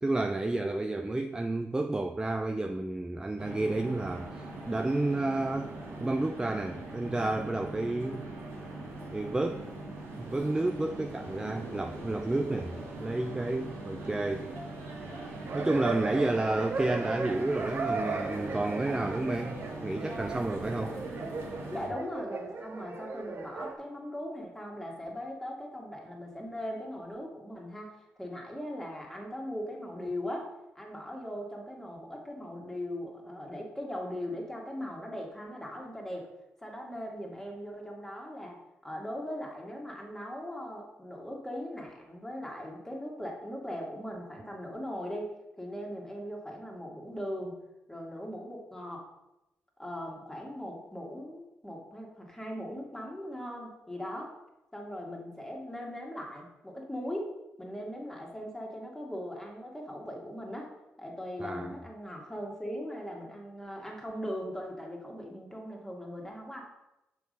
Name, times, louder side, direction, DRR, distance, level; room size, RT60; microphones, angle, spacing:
voice 1, 0.0-5.7 6.0-8.2 9.1-9.7 10.2-14.5 15.5-19.6 19.8-20.9 61.4-61.7, right 2 dB, 15° right, 5 dB, 0.5 m, -31 dB
sound 1, 3.4-21.9, right 2 dB, 80° right, 2.1 m, -41 dB
sound 2, 15.5-23.7, right 4 dB, 55° right, 1.0 m, -37 dB
voice 2, 21.7-36.3 36.6-47.6 47.9-49.1 49.8-54.3 54.7-60.7 61.0-66.6, equal, 10° left, -1 dB, 2.1 m, -39 dB
6.1 x 4.6 x 5.3 m, 0.92 s
cardioid pair, 65°, 5 cm